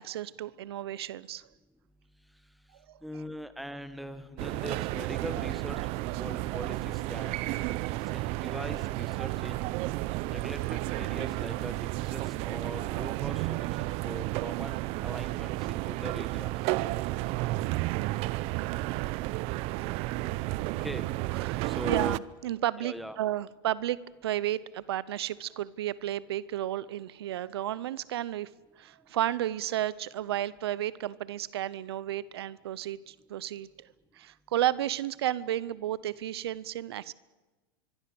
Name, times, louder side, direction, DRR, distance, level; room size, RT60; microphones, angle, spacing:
voice 1, 0.0-1.5 2.9-3.0 7.5-7.6 8.4-8.6 12.1-12.2 17.8-18.2 18.5-18.8 19.7-20.1 21.3-24.0 24.2-28.5 28.8-33.9 34.1-37.1, right 13 dB, 85° right, 19 dB, 0.8 m, -33 dB
voice 2, 3.0-5.8 6.2-7.4 7.8-9.6 10.3-16.5 20.8-21.0 21.6-22.2 22.8-23.2, equal, ahead, 10 dB, 1.6 m, -41 dB
sound 1, 4.4-22.2, right 19 dB, 50° right, 0.7 m, -32 dB
24.0 x 23.5 x 7.0 m, 1.2 s
hypercardioid pair, 115°, 13 cm